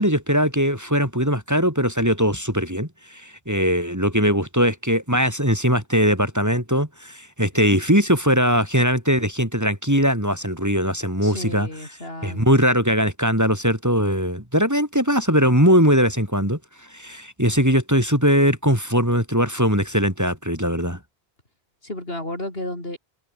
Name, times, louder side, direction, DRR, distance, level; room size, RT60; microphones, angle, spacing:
voice 1, 0.0-11.7 12.2-16.6 16.9-21.0, equal, 15° right, 5.1 m, -20 dB
voice 2, 11.2-12.6 21.8-23.0, left 1 dB, 65° left, 8.1 m, -33 dB
omnidirectional pair, 1.1 m